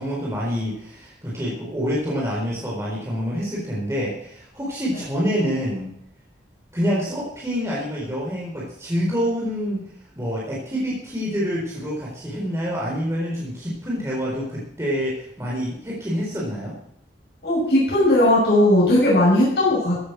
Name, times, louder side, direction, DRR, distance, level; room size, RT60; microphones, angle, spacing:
voice 1, 0.0-5.9 6.7-9.9 10.2-16.8, equal, 15° right, -5 dB, 4.0 m, -27 dB
voice 2, 17.4-20.0, left 1 dB, 70° left, -6 dB, 6.0 m, -17 dB
15.0 x 10.0 x 6.1 m, 0.73 s
head